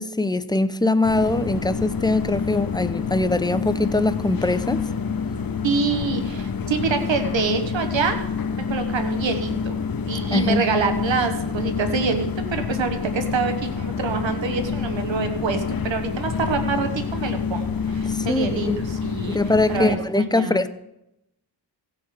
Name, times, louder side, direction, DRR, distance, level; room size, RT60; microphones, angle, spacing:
voice 1, 0.0-4.8 10.3-10.6 18.1-18.8 19.3-20.7, left 2 dB, 10° left, 0.6 m, -22 dB
sound 1, 1.0-20.0, left 5 dB, 50° left, 1.0 m, -27 dB
voice 2, 5.6-8.2 8.7-9.7 10.1-18.7 19.0-19.4 19.7-20.7, right 5 dB, 90° right, 1.3 m, -26 dB
16.0 x 7.1 x 5.1 m
cardioid pair, 70°, 44 cm